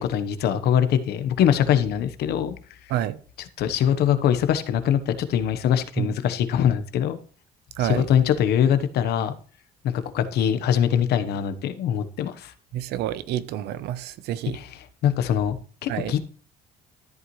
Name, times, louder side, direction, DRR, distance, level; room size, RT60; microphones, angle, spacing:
voice 1, 0.0-2.5 3.6-7.2 7.8-9.3 9.8-12.5 14.5-14.7 15.0-15.6 15.8-16.3, left 9 dB, 75° left, 1.1 m, -22 dB
voice 2, 12.7-14.6 15.9-16.3, right 12 dB, 80° right, 0.8 m, -28 dB
13.5 x 8.1 x 3.2 m
cardioid pair, 110°, 17 cm